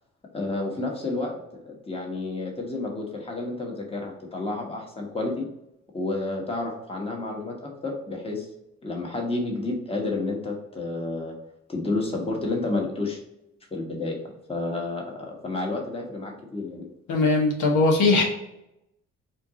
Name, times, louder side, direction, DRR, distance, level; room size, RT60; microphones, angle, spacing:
voice 1, 0.3-5.5 5.9-8.5 8.8-11.3 11.7-13.2 13.7-14.2 14.5-16.9, left 2 dB, 20° left, 0 dB, 1.2 m, -30 dB
voice 2, 17.1-18.2, left 3 dB, 75° left, 1 dB, 1.1 m, -20 dB
4.4 x 2.6 x 3.8 m, 0.85 s
cardioid pair, 90°, 30 cm